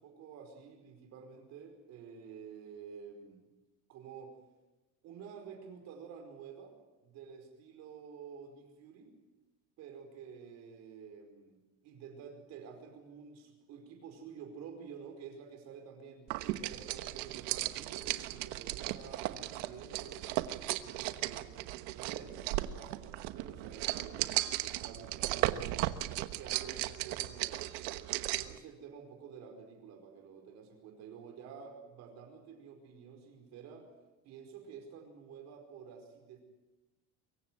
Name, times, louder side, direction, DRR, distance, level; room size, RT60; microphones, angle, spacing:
voice 1, 0.0-3.4 3.9-4.3 5.0-6.7 7.0-9.1 9.8-16.3 16.6-21.6 21.9-25.9 26.4-27.8 28.3-33.9 34.2-36.4, right 6 dB, 45° right, 4 dB, 5.0 m, -50 dB
sound 1, 16.3-28.6, right 16 dB, 70° right, 1.2 m, -36 dB
24.0 x 15.5 x 9.5 m, 1.1 s
cardioid pair, 180°, 37 cm